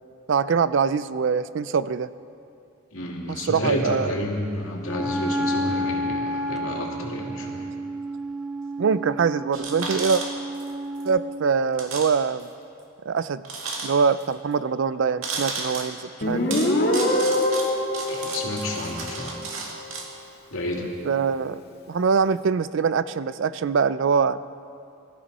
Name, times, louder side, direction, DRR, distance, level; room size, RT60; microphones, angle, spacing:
voice 1, 0.3-2.1 3.3-4.1 8.8-10.2 11.0-12.5 13.1-13.4 13.8-16.4 21.0-21.6 21.9-24.4, right 5 dB, 60° right, 15 dB, 0.4 m, -23 dB
voice 2, 2.9-7.6 18.1-19.4 20.5-20.9, left 1 dB, 75° left, -1 dB, 2.4 m, -30 dB
Wind instrument woodwind instrument, 4.8-11.5, equal, ahead, 0.6 m, -30 dB
sound 1, 9.5-10.7 11.0-11.1 11.7-12.1 12.4-12.5 13.4-14.2 15.2-15.9 16.5-20.1, right 4 dB, 85° right, 2.1 m, -33 dB
Guitar, 16.2-19.7, left 1 dB, 50° left, 1.7 m, -24 dB
21.0 x 14.0 x 4.2 m, 2.5 s
head